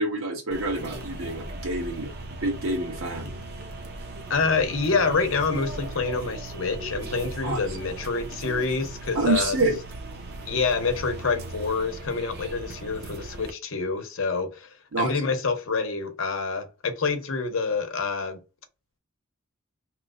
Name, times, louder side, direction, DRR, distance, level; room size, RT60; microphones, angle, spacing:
voice 1, 0.0-2.1 2.4-3.3 7.4-7.6 9.1-9.8 14.9-15.2, right 2 dB, 85° right, 1.2 m, -27 dB
sound 1, 0.5-13.5, right 2 dB, 50° right, 0.6 m, -38 dB
voice 2, 4.3-9.6 10.5-14.7 15.0-18.4, left 4 dB, 75° left, 0.7 m, -27 dB
2.9 x 2.1 x 3.7 m
head